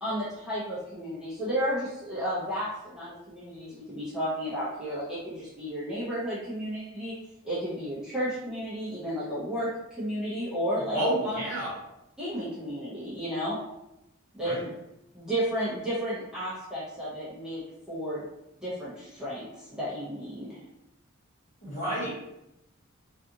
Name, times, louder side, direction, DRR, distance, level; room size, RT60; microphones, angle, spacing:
voice 1, 0.0-7.1 7.4-11.0 11.2-11.4 12.2-13.6 14.3-14.5 15.1-17.6 17.9-18.2 18.6-20.6, equal, 5° right, -11 dB, 0.6 m, -32 dB
voice 2, 10.9-11.7 14.4-14.7 21.6-22.1, right 1 dB, 35° left, -8 dB, 1.2 m, -30 dB
2.5 x 2.4 x 2.6 m, 0.87 s
head